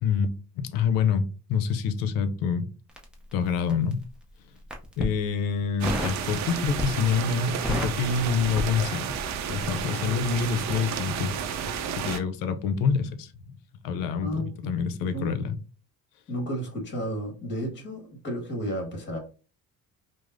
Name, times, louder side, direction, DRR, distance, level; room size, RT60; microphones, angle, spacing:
voice 1, 0.0-2.7 3.3-4.0 5.0-9.1 9.5-11.3 12.0-13.6 13.8-15.6, left 6 dB, 90° left, 0.6 m, -27 dB
Crackle, 2.9-4.0 4.6-5.2 5.8-6.2 6.6-7.1 7.4-9.3 9.6-9.8, equal, 5° right, 0.5 m, -32 dB
sound 1, 5.8-12.2, right 7 dB, 55° right, 0.5 m, -32 dB
voice 2, 14.2-14.7 15.0-15.3 16.3-19.2, equal, 35° left, 1.4 m, -32 dB
4.9 x 2.0 x 2.5 m
cardioid pair, 130°, 33 cm